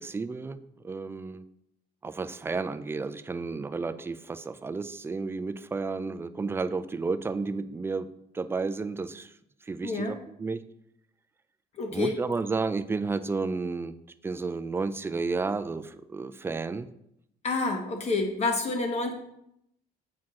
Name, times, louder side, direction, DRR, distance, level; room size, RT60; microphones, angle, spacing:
voice 1, 0.0-1.4 2.0-8.1 8.3-9.3 9.7-10.6 11.9-14.0 14.2-16.9, right 4 dB, 15° right, 11 dB, 0.3 m, -32 dB
voice 2, 9.8-10.2 11.8-12.1 17.4-19.1, left 3 dB, 40° left, 4 dB, 1.3 m, -28 dB
7.4 x 4.4 x 3.7 m, 0.77 s
cardioid pair, 110°, 17 cm